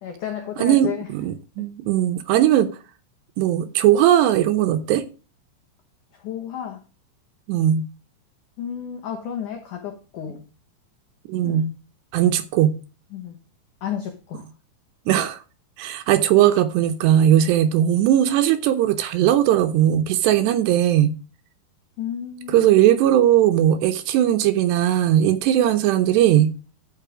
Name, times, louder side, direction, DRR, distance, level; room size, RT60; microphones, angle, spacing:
voice 1, 0.0-1.1 1.6-1.7 6.1-6.8 8.6-10.5 11.4-11.7 13.1-13.4 13.8-14.5 22.0-22.7, left 9 dB, 85° left, 1.7 m, -32 dB
voice 2, 0.6-2.7 3.4-5.0 7.5-7.9 11.3-11.7 12.1-12.8 15.1-15.4 15.8-21.2 22.5-26.5, right 11 dB, 75° right, 2.7 m, -18 dB
13.5 x 5.6 x 4.9 m
omnidirectional pair, 5.4 m